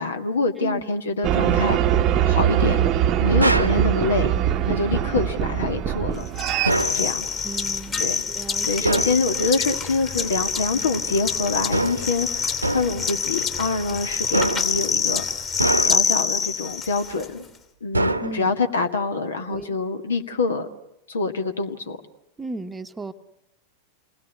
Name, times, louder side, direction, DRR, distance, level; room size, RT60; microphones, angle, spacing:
voice 1, 0.0-1.8 2.2-2.8 3.2-4.3 4.7-6.2 6.9-7.3 8.0-8.2 8.7-15.4 15.8-17.5 17.8-20.7 21.1-22.0, left 3 dB, 70° left, 7 dB, 2.0 m, -25 dB
sound 1, 1.2-6.7, right 10 dB, 35° right, 0.9 m, -22 dB
sound 2, 3.4-3.8 6.6-7.1 8.8-9.2 11.7-12.1 12.6-13.0 14.3-14.8 15.6-16.2 17.9-18.6, right 2 dB, 85° right, 1.2 m, -24 dB
sound 3, 6.4-17.3, left 5 dB, 25° left, 2.7 m, -26 dB
voice 2, 7.4-8.9 18.2-18.6 19.5-19.8 22.4-23.1, right 3 dB, 10° right, 7 dB, 1.1 m, -35 dB
28.5 x 20.5 x 8.3 m, 0.82 s
figure-of-eight pair, 90°, 0 cm